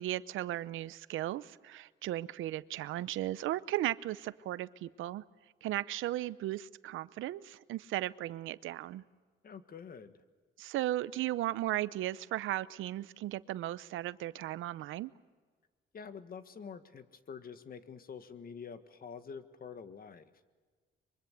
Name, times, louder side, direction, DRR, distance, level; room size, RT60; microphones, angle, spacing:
voice 1, 0.0-5.2 5.6-9.0 10.6-15.1, right 14 dB, 85° right, 17 dB, 0.7 m, -36 dB
voice 2, 9.4-10.2 15.9-20.3, left 6 dB, 50° left, 10 dB, 1.7 m, -47 dB
23.5 x 23.5 x 8.3 m, 1.5 s
cardioid pair, 90°, 20 cm